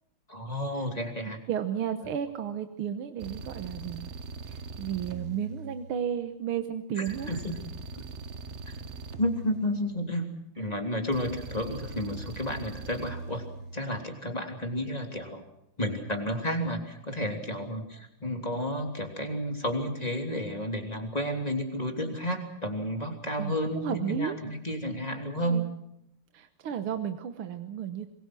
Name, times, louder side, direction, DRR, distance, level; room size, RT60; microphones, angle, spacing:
voice 1, 0.3-1.4 7.0-7.4 9.2-10.2 10.5-13.4 13.7-15.4 15.8-25.6, equal, 15° left, 3 dB, 3.3 m, -31 dB
voice 2, 1.3-4.1 4.5-7.4 8.8-8.9 18.2-18.3 23.4-24.4 25.4-25.7 26.3-28.1, right 9 dB, 75° right, 7 dB, 2.0 m, -33 dB
sound 1, 3.2-6.3 7.1-10.3 11.1-14.0, right 4 dB, 40° right, 1.1 m, -41 dB
26.0 x 22.0 x 6.2 m, 0.81 s
omnidirectional pair, 2.4 m